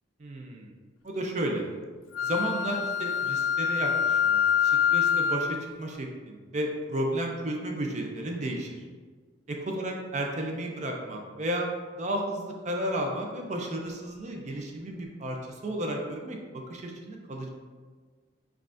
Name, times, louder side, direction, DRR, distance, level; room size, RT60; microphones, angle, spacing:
voice 1, 0.2-0.7 1.0-1.6 2.2-8.8 9.5-11.7 12.0-15.4 15.6-17.5, right 1 dB, 35° right, 1 dB, 0.4 m, -33 dB
Wind instrument woodwind instrument, 2.1-5.5, left 7 dB, 85° left, 0.3 m, -25 dB
5.4 x 2.4 x 2.5 m, 1.5 s
head